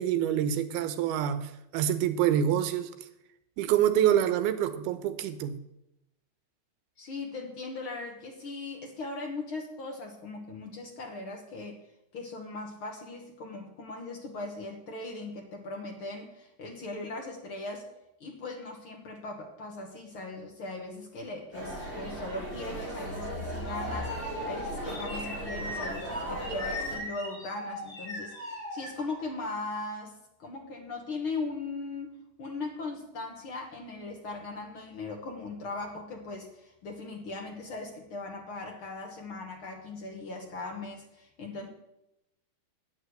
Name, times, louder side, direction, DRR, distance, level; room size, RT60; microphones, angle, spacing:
voice 1, 0.0-2.9 3.6-5.6, right 10 dB, 80° right, 10 dB, 2.8 m, -26 dB
voice 2, 7.0-11.8 12.1-17.9 18.2-41.7, left 3 dB, 65° left, 2 dB, 1.2 m, -39 dB
sound 1, 21.5-27.0, right 1 dB, 30° left, 6.9 m, -37 dB
sound 2, 23.0-29.4, left 1 dB, 15° left, 3.8 m, -39 dB
9.6 x 8.9 x 8.1 m, 0.85 s
omnidirectional pair, 4.5 m